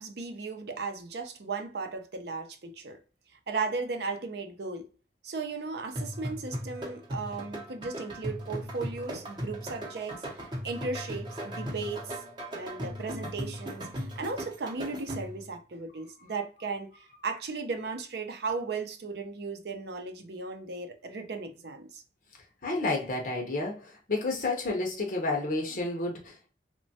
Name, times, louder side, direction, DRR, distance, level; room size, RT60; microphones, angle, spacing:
voice 1, 0.0-3.0 3.5-4.9 5.2-12.2 12.5-22.0, right 4 dB, 65° right, 0.5 m, -36 dB
sound 1, 6.0-15.5, equal, 25° right, 0.6 m, -38 dB
voice 2, 22.6-26.5, left 2 dB, 50° left, 0.6 m, -30 dB
3.1 x 2.2 x 2.6 m
head